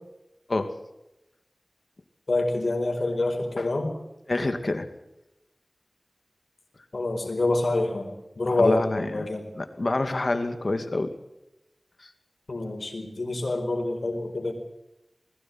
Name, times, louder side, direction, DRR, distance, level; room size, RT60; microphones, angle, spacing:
voice 1, 2.3-3.9 6.9-9.5 12.5-14.5, left 2 dB, 80° left, 4 dB, 4.7 m, -26 dB
voice 2, 4.3-4.9 8.5-9.3 9.6-11.1 12.0-12.1, left 2 dB, 60° left, 8 dB, 2.3 m, -27 dB
20.5 x 17.0 x 7.8 m, 0.92 s
wide cardioid pair, 45°, 0 cm